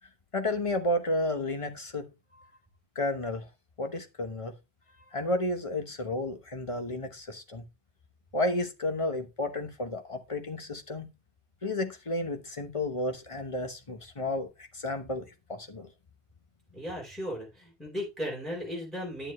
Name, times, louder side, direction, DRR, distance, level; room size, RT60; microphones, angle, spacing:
voice 1, 0.3-2.1 2.4-2.5 2.9-3.5 3.8-4.5 5.1-7.6 8.3-11.1 11.6-15.9, left 1 dB, 30° left, 1.2 m, -32 dB
voice 2, 16.7-19.3, equal, ahead, 4.2 m, -36 dB
10.0 x 7.2 x 3.2 m
omnidirectional pair, 1.1 m